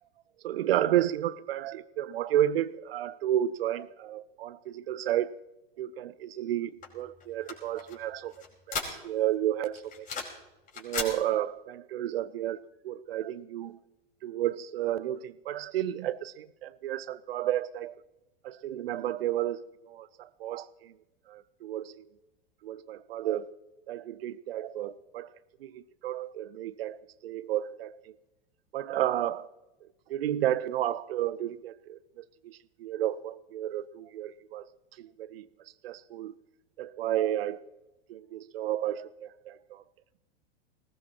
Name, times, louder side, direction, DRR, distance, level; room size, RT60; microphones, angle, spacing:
voice 1, 0.4-5.3 5.8-8.3 8.7-10.1 10.8-13.8 14.2-17.9 18.4-19.6 19.9-20.9 21.3-22.0 22.6-23.5 23.9-25.3 25.6-28.1 28.7-29.5 30.1-34.7 35.0-35.4 35.8-36.3 36.8-37.6 38.1-39.8, right 12 dB, 75° right, 17 dB, 0.8 m, -32 dB
sound 1, 6.8-9.3 9.7-10.4 10.7-11.1, left 5 dB, 25° left, 4.9 m, -37 dB
21.0 x 18.5 x 3.0 m, 1.0 s
hypercardioid pair, 110°, 30 cm